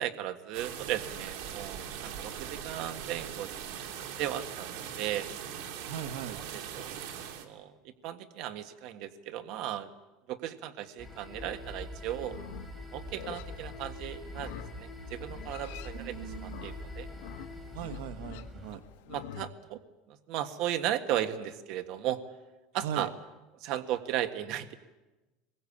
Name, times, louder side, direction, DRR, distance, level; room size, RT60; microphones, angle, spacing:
voice 1, 0.0-3.5 4.2-5.3 6.3-6.9 7.3-7.7 8.0-9.9 10.3-12.4 12.9-16.1 16.4-17.1 19.1-19.8 20.1-22.2 22.7-23.1 23.6-24.7, right 12 dB, 55° right, 8 dB, 1.6 m, -36 dB
sound 1, 0.5-7.5, right 8 dB, 70° right, 2.8 m, -41 dB
voice 2, 5.9-6.4 16.0-16.7 17.7-18.8 22.8-23.1, right 9 dB, 85° right, 9 dB, 1.3 m, -39 dB
sound 2, 11.0-18.7, left 1 dB, 5° right, 3.6 m, -43 dB
Livestock farm animals working animals, 12.2-19.5, left 12 dB, 85° left, 1.3 m, -48 dB
24.0 x 22.0 x 8.6 m, 1.1 s
cardioid pair, 155°, 0 cm